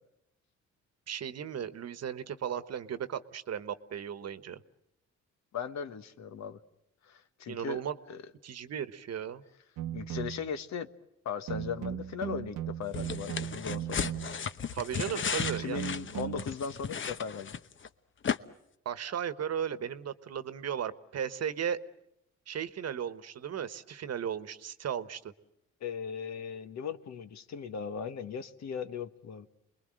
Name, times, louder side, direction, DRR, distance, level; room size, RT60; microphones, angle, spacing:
voice 1, 1.1-4.6 7.5-8.0 8.4-9.4 14.7-15.8 18.8-21.8 22.5-25.3, right 8 dB, 55° right, 12 dB, 1.3 m, -36 dB
voice 2, 5.5-6.6 7.1-7.8 8.1-8.2 9.9-10.9 11.2-14.1 15.3-17.5 25.8-29.5, left 6 dB, 65° left, 10 dB, 1.4 m, -38 dB
sound 1, 9.8-10.5 11.5-14.5 15.4-16.5, right 11 dB, 85° right, 1.1 m, -37 dB
sound 2, 12.9-17.9 18.2-18.4, left 7 dB, 40° left, 1.0 m, -35 dB
29.0 x 21.5 x 7.7 m, 0.82 s
cardioid pair, 90°, 30 cm